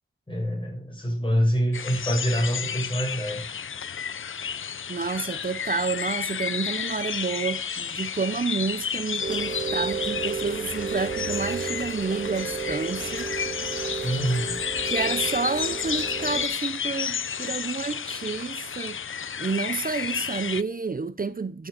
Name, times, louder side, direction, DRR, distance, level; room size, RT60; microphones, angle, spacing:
voice 1, 0.3-3.5 14.0-14.6, equal, 25° left, 6.4 m, -26 dB
sound 1, 1.7-20.6, left 7 dB, 80° left, 0.5 m, -31 dB
voice 2, 4.9-13.3 14.8-19.0 19.4-21.7, right 4 dB, 45° right, 0.6 m, -30 dB
Rain, 9.2-16.5, right 5 dB, 65° right, 2.4 m, -32 dB
12.0 x 7.4 x 6.7 m
wide cardioid pair, 75°, 21 cm